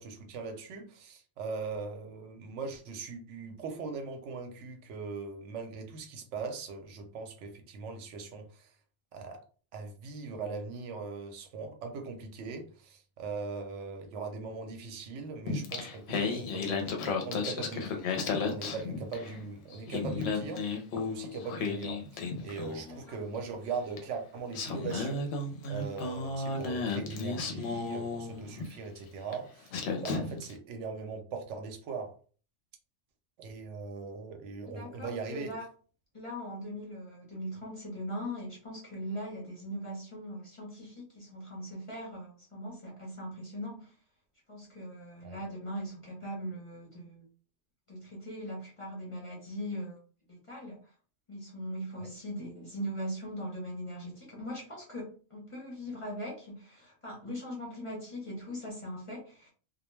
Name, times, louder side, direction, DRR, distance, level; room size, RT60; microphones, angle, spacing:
voice 1, 0.0-8.7 9.1-9.4 9.7-25.3 25.7-32.1 33.4-35.5 45.2-45.4 52.0-52.1, right 4 dB, 80° right, 0.9 m, -40 dB
Singing, 15.5-19.4 19.7-23.0 24.0-24.1 24.5-28.7 29.3-29.4 29.7-30.5, left 4 dB, 65° left, 0.8 m, -34 dB
voice 2, 34.7-35.6 36.1-43.9 44.5-47.2 47.9-50.0 50.3-50.9 51.3-59.5, equal, 35° left, 0.6 m, -40 dB
2.2 x 2.1 x 3.1 m
omnidirectional pair, 1.2 m